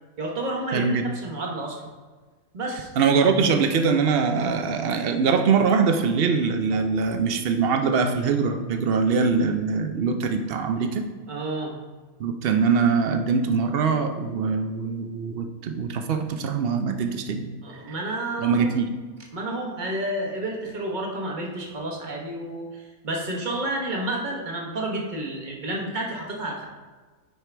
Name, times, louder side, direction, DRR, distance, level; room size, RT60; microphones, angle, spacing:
voice 1, 0.2-1.9 2.5-2.9 10.8-10.9 11.3-11.8 17.6-18.7 19.3-26.6, right 1 dB, 35° right, -1 dB, 1.2 m, -30 dB
voice 2, 0.7-1.0 3.0-11.1 12.2-17.5 18.4-18.9, right 5 dB, 55° right, 5 dB, 0.7 m, -23 dB
9.7 x 4.7 x 3.4 m, 1.3 s
omnidirectional pair, 1.5 m